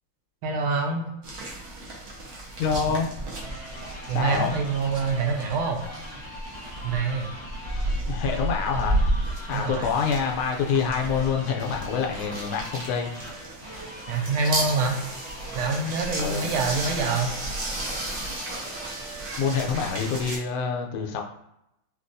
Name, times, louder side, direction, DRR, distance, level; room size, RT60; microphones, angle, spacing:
voice 1, 0.4-1.1 4.1-5.8 6.8-7.3 9.5-9.9 14.1-15.0 15.5-17.3, right 4 dB, 80° right, 2 dB, 1.5 m, -26 dB
sound 1, 1.2-20.4, right 1 dB, 60° right, 1.0 m, -33 dB
voice 2, 2.6-3.1 4.1-4.6 8.1-9.1 9.5-13.1 16.2-16.4 19.4-21.2, left 6 dB, 85° left, 2 dB, 1.5 m, -26 dB
sound 2, 2.9-19.4, equal, 20° right, 0.4 m, -42 dB
4.0 x 2.3 x 2.5 m, 0.81 s
omnidirectional pair, 2.3 m